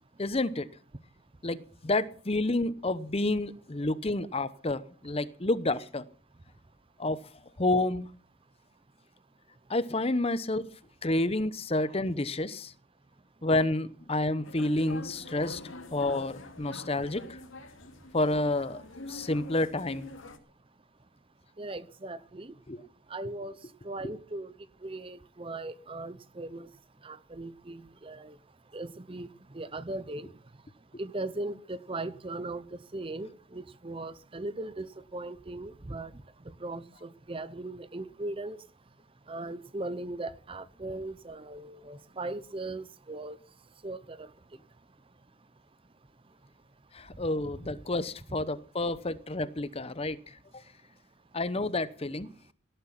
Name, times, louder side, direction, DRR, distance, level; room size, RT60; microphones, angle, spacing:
voice 1, 0.2-0.7 1.4-6.0 7.0-7.2 7.6-8.1 9.7-10.7 11.0-12.7 13.4-15.6 15.9-17.4 18.1-18.8 19.1-20.1 22.7-22.8 24.0-24.1 46.9-50.2 51.3-52.3, left 2 dB, 30° left, 0.8 m, -29 dB
sound 1, 14.4-20.4, left 2 dB, 70° left, 2.3 m, -45 dB
voice 2, 21.6-22.5 23.1-23.5 23.8-24.5 24.8-26.7 27.0-28.3 28.7-29.3 29.5-30.3 31.0-32.6 32.9-36.1 36.6-38.6 39.3-43.4 43.8-44.3, right 2 dB, 25° right, 0.7 m, -38 dB
18.0 x 11.5 x 5.9 m
head